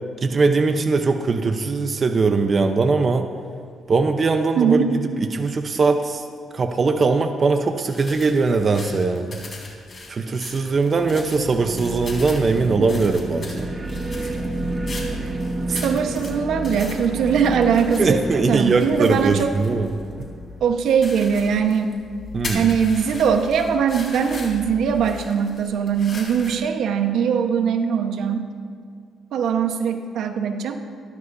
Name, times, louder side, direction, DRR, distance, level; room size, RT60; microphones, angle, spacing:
voice 1, 0.2-3.3 3.9-4.8 5.2-6.2 6.5-9.4 10.1-13.7 15.7-15.8 18.0-19.9 22.3-22.7, right 4 dB, 40° right, 5 dB, 0.9 m, -20 dB
voice 2, 4.6-4.9 12.8-12.9 15.7-19.5 20.6-22.0 22.5-28.4 29.3-30.8, right 7 dB, 75° right, 5 dB, 1.2 m, -21 dB
sound 1, 7.9-26.6, left 3 dB, 40° left, 3.9 m, -39 dB
sound 2, 10.8-21.0, right 1 dB, 25° right, 1.8 m, -31 dB
27.0 x 12.5 x 2.8 m, 2.1 s
cardioid pair, 90°, 0 cm